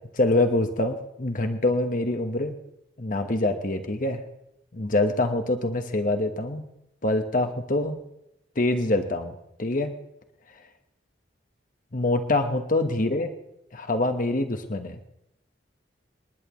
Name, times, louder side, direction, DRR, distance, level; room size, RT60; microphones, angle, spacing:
voice 1, 0.1-2.6 3.0-4.2 4.7-6.6 7.0-8.0 8.5-9.9 11.9-13.3 13.7-15.0, left 2 dB, 45° left, 6 dB, 1.2 m, -25 dB
27.0 x 11.0 x 3.1 m, 0.81 s
head